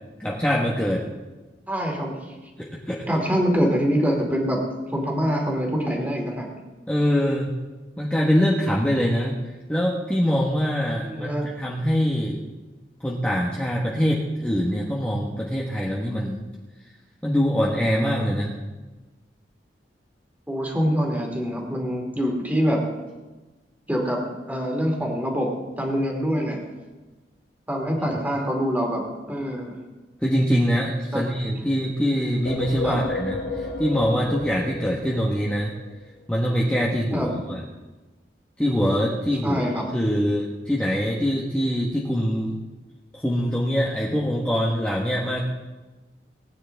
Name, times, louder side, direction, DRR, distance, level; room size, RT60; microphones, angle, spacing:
voice 1, 0.2-1.0 2.6-3.0 6.9-7.5 8.0-9.4 9.7-12.4 13.0-16.4 17.2-18.5 30.2-35.7 36.3-37.6 38.6-39.6 39.9-42.6 43.1-45.4, equal, 5° left, -4 dB, 1.3 m, -23 dB
voice 2, 1.7-2.3 3.1-6.5 11.0-11.5 20.5-22.8 23.9-24.2 24.5-25.5 25.8-26.6 27.7-29.0 29.3-29.7 31.1-31.2 32.8-33.0 37.1-37.3 39.4-39.8, equal, 10° right, 0 dB, 2.5 m, -24 dB
sound 1, 32.4-36.0, left 2 dB, 85° left, 2.0 m, -32 dB
19.5 x 9.7 x 3.5 m, 1.2 s
head